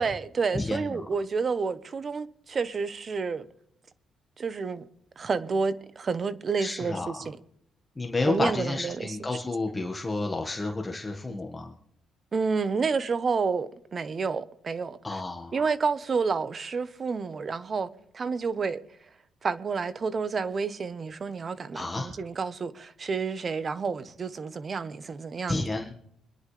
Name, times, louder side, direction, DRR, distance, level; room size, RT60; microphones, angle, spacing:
voice 1, 0.0-3.5 4.4-4.8 5.2-7.4 8.3-9.2 12.3-15.2 15.5-18.8 19.4-25.6, right 5 dB, 40° right, 0.9 m, -30 dB
voice 2, 0.5-1.0 6.6-7.2 8.0-11.8 15.0-15.5 21.7-22.1 25.5-25.9, left 3 dB, 20° left, 1.6 m, -31 dB
25.0 x 10.5 x 3.3 m
cardioid pair, 90°, 0 cm